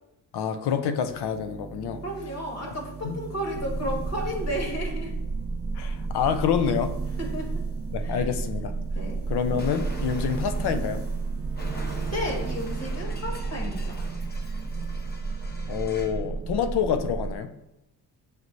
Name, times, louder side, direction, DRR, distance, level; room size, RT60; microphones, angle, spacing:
voice 1, 0.3-2.0 3.0-3.2 5.8-7.0 7.9-8.7 9.3-11.0 15.7-17.5, left 7 dB, 75° left, 9 dB, 0.6 m, -27 dB
sound 1, 1.0-14.0 14.3-15.3, right 6 dB, 35° right, 0.6 m, -40 dB
voice 2, 2.0-5.1 7.2-7.5 8.0-8.3 8.9-9.2 12.0-14.0, equal, 40° left, 0 dB, 1.4 m, -33 dB
sound 2, 3.5-17.4, right 3 dB, 70° right, 0.7 m, -32 dB
Explosion, 9.6-16.2, left 1 dB, 25° left, 0.8 m, -44 dB
6.7 x 3.1 x 2.6 m, 0.89 s
cardioid pair, 90°, 40 cm